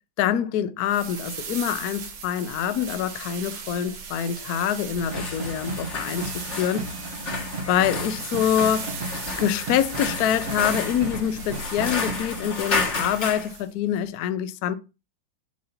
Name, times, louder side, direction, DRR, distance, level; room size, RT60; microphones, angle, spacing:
voice 1, 0.2-6.9 7.7-9.0 9.4-14.7, left 10 dB, 70° left, 0.9 m, -25 dB
sound 1, 0.8-13.7, right 6 dB, 85° right, 2.1 m, -39 dB
sound 2, 4.9-13.5, left 3 dB, 40° left, 1.5 m, -32 dB
sound 3, 5.1-12.6, right 2 dB, 50° right, 1.2 m, -35 dB
7.6 x 2.8 x 5.7 m
omnidirectional pair, 2.3 m